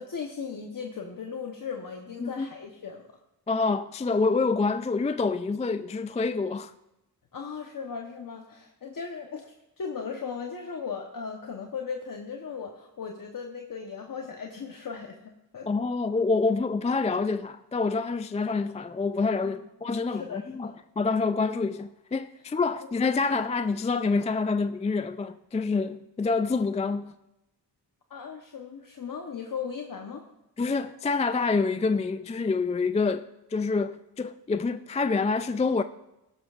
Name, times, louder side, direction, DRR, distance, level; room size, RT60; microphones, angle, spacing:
voice 1, 0.0-3.0 7.3-15.1 15.5-15.7 19.4-19.6 20.1-20.7 22.8-22.9 28.1-30.3, left 6 dB, 50° left, 1.1 m, -37 dB
voice 2, 3.5-6.7 15.7-27.1 30.6-35.8, left 4 dB, 15° left, 0.3 m, -27 dB
16.0 x 12.0 x 2.5 m
cardioid pair, 70°, 43 cm